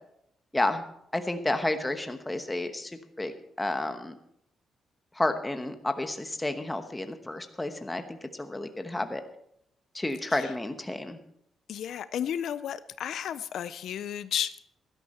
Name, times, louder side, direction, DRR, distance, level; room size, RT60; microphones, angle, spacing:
voice 1, 0.5-0.8 1.1-2.9 3.2-3.3 3.6-4.1 5.2-9.2 9.9-11.2, left 2 dB, 10° left, 7 dB, 1.0 m, -31 dB
voice 2, 11.7-14.6, left 9 dB, 70° left, 14 dB, 0.5 m, -33 dB
16.5 x 12.5 x 4.3 m, 0.74 s
wide cardioid pair, 170°, 0 cm